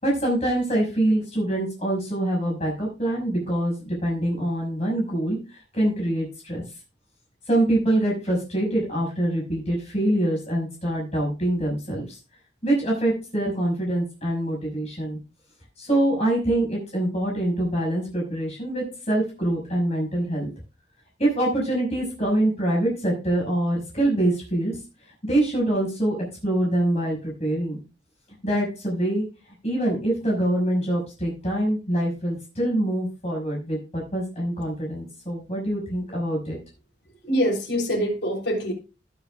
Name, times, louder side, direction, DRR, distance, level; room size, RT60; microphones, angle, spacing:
voice 1, 0.0-6.6 7.5-12.2 12.6-15.2 15.8-20.5 21.2-24.8 25.2-26.2 26.4-27.8 28.4-29.2 29.6-36.6, right 1 dB, 35° left, -2 dB, 5.7 m, -25 dB
voice 2, 37.3-38.7, equal, 65° left, -1 dB, 3.6 m, -24 dB
20.5 x 7.4 x 2.4 m, 0.30 s
head